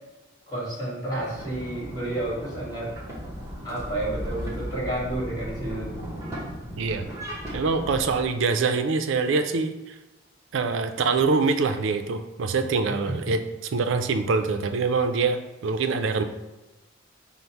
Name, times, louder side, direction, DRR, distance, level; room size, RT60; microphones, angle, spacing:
voice 1, 0.5-2.9 3.6-6.0 12.9-13.1, right 1 dB, 20° left, -6 dB, 1.5 m, -31 dB
sound 1, 1.1-8.2, equal, 15° right, 0.9 m, -36 dB
voice 2, 6.8-7.1 7.5-10.0 10.5-16.2, right 4 dB, 75° right, 8 dB, 0.4 m, -24 dB
5.3 x 2.1 x 4.5 m, 1.0 s
head